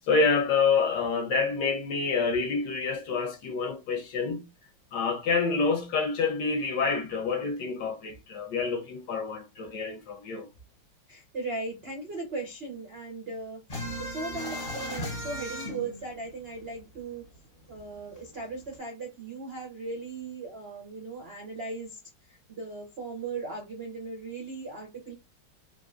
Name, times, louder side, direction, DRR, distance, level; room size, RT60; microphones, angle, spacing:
voice 1, 0.1-4.5 4.9-10.5, left 4 dB, 65° left, 1.2 m, -27 dB
voice 2, 11.1-13.6 14.0-17.3 17.7-22.0 22.5-25.1, right 3 dB, 70° right, 0.5 m, -38 dB
sound 1, 13.7-17.0 17.3-17.4 17.8-18.8, equal, 40° left, 1.0 m, -36 dB
3.6 x 2.6 x 2.5 m
omnidirectional pair, 2.3 m